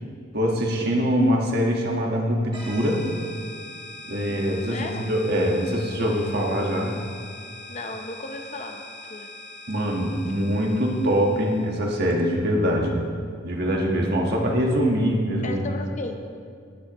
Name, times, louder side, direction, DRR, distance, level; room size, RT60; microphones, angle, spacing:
voice 1, 0.3-3.0 4.1-6.9 9.7-12.9 13.4-15.7, equal, 60° right, 0 dB, 1.5 m, -23 dB
sound 1, 2.5-11.9, left 2 dB, 25° right, 1.9 m, -42 dB
voice 2, 4.7-5.0 7.7-8.8 9.1-9.3 15.4-16.3, left 2 dB, 40° left, 4 dB, 0.8 m, -34 dB
17.5 x 7.5 x 3.1 m, 2.2 s
head